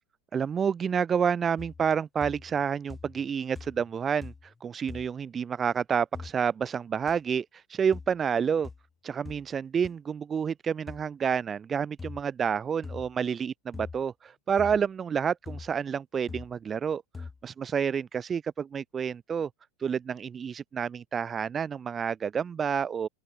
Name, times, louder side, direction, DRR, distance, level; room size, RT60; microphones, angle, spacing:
voice 1, 0.3-8.7 9.0-17.0 17.4-19.5 19.8-23.1, right 7 dB, 25° right, 0.3 m, -29 dB
sound 1, 1.6-1.9 2.2-2.6 2.9-3.3 3.5-3.9 4.2-4.5 4.9-5.1 6.1-6.3 7.1-7.2 7.9-8.1 8.6-8.8 9.2-9.4 9.8-9.9 10.9-11.0 12.0-12.2 12.8-13.1 13.7-14.0 14.6-14.8 15.5-15.7 16.3-16.5 17.1-17.4, left 4 dB, 15° left, 1.1 m, -42 dB
open air
hypercardioid pair, 95°, 0 cm